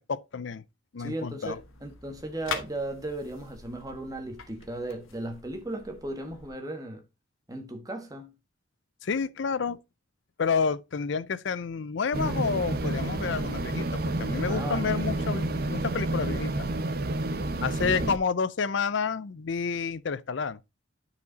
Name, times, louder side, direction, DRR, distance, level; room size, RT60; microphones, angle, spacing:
voice 1, 0.1-0.6 0.9-1.6 9.0-9.8 10.4-16.7 17.6-20.6, left 5 dB, 65° left, 0.5 m, -29 dB
voice 2, 1.0-7.0 7.5-8.4 14.5-14.9 17.8-18.1, right 1 dB, 15° right, 1.4 m, -36 dB
sound 1, 1.4-6.5, left 5 dB, 85° left, 1.4 m, -42 dB
sound 2, 12.1-18.2, right 2 dB, 50° right, 0.6 m, -29 dB
9.5 x 5.0 x 3.9 m
head